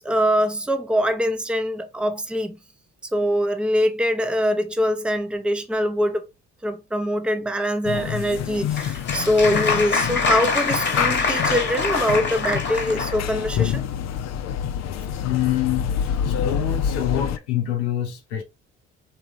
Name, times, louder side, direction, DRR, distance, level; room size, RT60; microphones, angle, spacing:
voice 1, 0.0-2.6 3.1-6.2 6.6-13.8, equal, 5° right, 0.7 m, -23 dB
sound 1, 7.8-17.4, left 9 dB, 50° left, 0.6 m, -27 dB
Applause, 8.4-13.2, left 4 dB, 30° left, 1.2 m, -25 dB
voice 2, 15.2-15.9 16.3-18.4, left 12 dB, 85° left, 0.8 m, -25 dB
3.5 x 2.8 x 2.9 m
hypercardioid pair, 50°, 34 cm